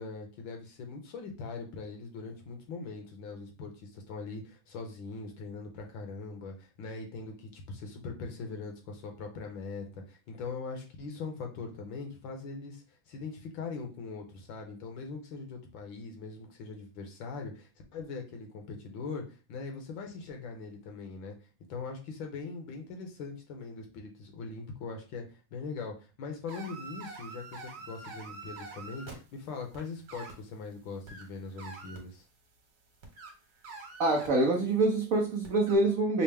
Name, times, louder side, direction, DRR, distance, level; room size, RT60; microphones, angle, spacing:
voice 1, 0.0-21.4 21.7-32.2, left 4 dB, 70° left, 1.5 m, -41 dB
sound 1, 26.5-29.1 29.7-30.3 31.1-32.0 33.0-34.3 35.4-35.8, right 4 dB, 60° right, 1.7 m, -45 dB
voice 2, 34.0-36.2, right 2 dB, 80° right, 0.7 m, -25 dB
5.5 x 2.0 x 3.4 m
omnidirectional pair, 2.3 m